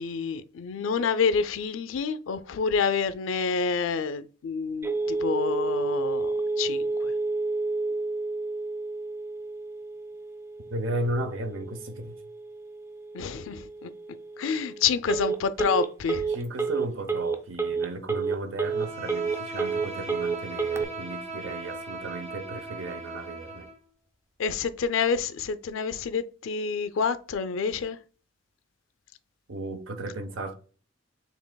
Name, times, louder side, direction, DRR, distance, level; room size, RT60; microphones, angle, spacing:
voice 1, 0.0-7.1 13.1-13.9 14.4-16.3 24.4-28.0, left 5 dB, 90° left, 0.4 m, -28 dB
Telephone, 4.8-20.8, right 4 dB, 15° right, 0.3 m, -30 dB
voice 2, 10.7-12.2 15.0-15.2 16.3-23.7 29.5-30.5, right 1 dB, 85° right, 0.8 m, -35 dB
Bowed string instrument, 18.6-23.8, right 2 dB, 35° right, 1.0 m, -38 dB
7.2 x 3.3 x 2.2 m
head